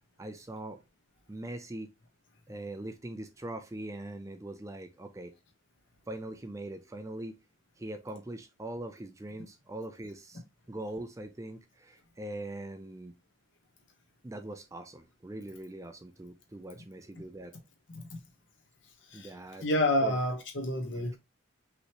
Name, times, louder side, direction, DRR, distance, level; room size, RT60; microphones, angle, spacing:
voice 1, 0.2-0.8 1.3-1.9 2.5-5.3 6.1-7.4 7.8-10.4 10.7-13.1 14.2-17.5 19.1-19.7 20.0-20.2 21.0-21.2, right 1 dB, 15° right, 0.4 m, -42 dB
voice 2, 19.6-21.1, left 1 dB, 65° left, 1.3 m, -28 dB
5.3 x 3.1 x 2.9 m
head